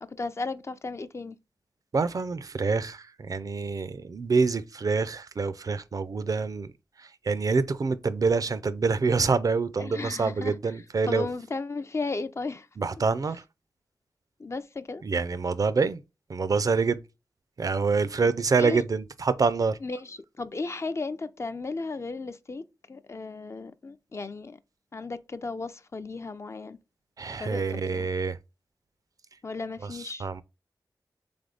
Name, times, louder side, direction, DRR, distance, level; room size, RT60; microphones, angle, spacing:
voice 1, 0.0-1.4 9.8-10.5 11.1-12.7 14.4-15.0 18.2-18.8 19.8-24.6 24.9-26.8 27.4-27.6 27.9-28.1 29.4-30.3, left 3 dB, 40° left, 0.4 m, -35 dB
voice 2, 1.9-6.7 7.0-11.3 12.8-13.4 15.0-16.0 16.3-17.0 17.6-19.8 27.2-28.4 29.8-29.9 30.2-30.4, right 4 dB, 55° right, 0.4 m, -26 dB
3.5 x 3.5 x 3.8 m
cardioid pair, 65°, 7 cm